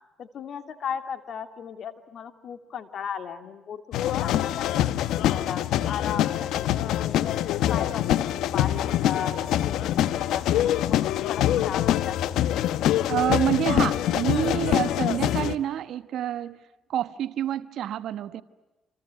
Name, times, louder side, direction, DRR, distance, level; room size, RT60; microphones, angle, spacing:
voice 1, 0.2-4.8 5.2-7.4 7.7-9.4 9.6-11.0 11.3-12.2, left 8 dB, 65° left, 2.6 m, -36 dB
sound 1, 3.9-15.5, left 12 dB, 80° left, 1.0 m, -24 dB
voice 2, 13.1-16.6 16.9-18.4, right 11 dB, 75° right, 1.2 m, -27 dB
27.5 x 27.5 x 7.7 m
supercardioid pair, 70°, 0 cm